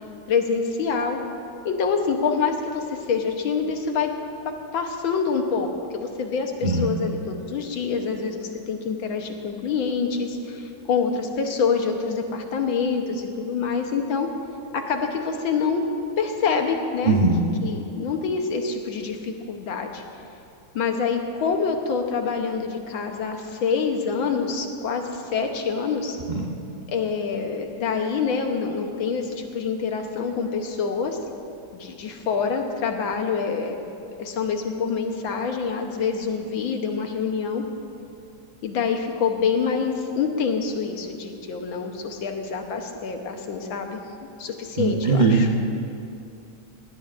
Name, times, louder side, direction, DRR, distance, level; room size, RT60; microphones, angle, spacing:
voice 1, 0.3-1.2 1.6-4.1 4.4-14.3 14.7-15.8 16.2-17.2 17.6-20.0 20.7-26.2 26.9-31.2 31.7-33.8 34.2-37.6 38.6-44.0 44.4-45.5, left 5 dB, 70° left, 4 dB, 1.7 m, -26 dB
voice 2, 17.1-17.4 26.3-26.5 44.8-45.6, right 3 dB, 50° right, -1 dB, 0.5 m, -20 dB
19.5 x 16.5 x 2.6 m, 2.6 s
omnidirectional pair, 2.4 m